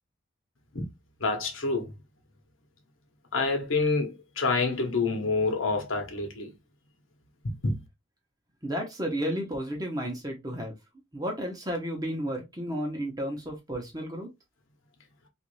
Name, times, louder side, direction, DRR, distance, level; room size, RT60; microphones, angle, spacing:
voice 1, 1.2-1.9 3.3-6.5 7.4-7.8, left 3 dB, 75° left, 1.0 m, -27 dB
voice 2, 8.6-10.8 11.1-14.3, equal, 20° right, 0.8 m, -32 dB
3.1 x 2.5 x 3.1 m
head